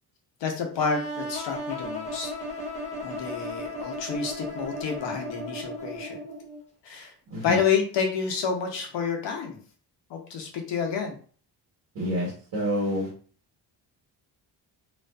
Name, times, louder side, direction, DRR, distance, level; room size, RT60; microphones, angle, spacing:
voice 1, 0.4-2.3 3.0-6.2 6.8-7.1 7.4-9.6 10.1-11.2, left 6 dB, 80° left, 3 dB, 0.8 m, -29 dB
sound 1, 0.8-6.6, equal, 15° left, 0.6 m, -35 dB
voice 2, 11.9-13.1, equal, 60° right, -3 dB, 1.2 m, -28 dB
2.4 x 2.4 x 2.2 m, 0.42 s
cardioid pair, 130°, 42 cm